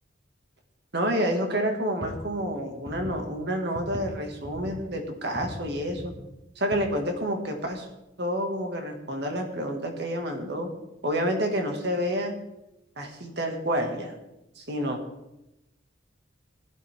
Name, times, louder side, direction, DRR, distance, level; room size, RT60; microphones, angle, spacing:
voice 1, 0.9-6.1 6.6-7.9 8.2-10.7 11.0-12.3 13.0-14.2 14.6-15.0, equal, 60° right, 3 dB, 2.1 m, -29 dB
sound 1, 2.0-3.4 3.8-4.1 4.3-4.9 5.4-6.2 6.7-6.8 7.8-7.9, equal, 20° right, 2.1 m, -39 dB
16.5 x 12.0 x 3.7 m, 0.92 s
head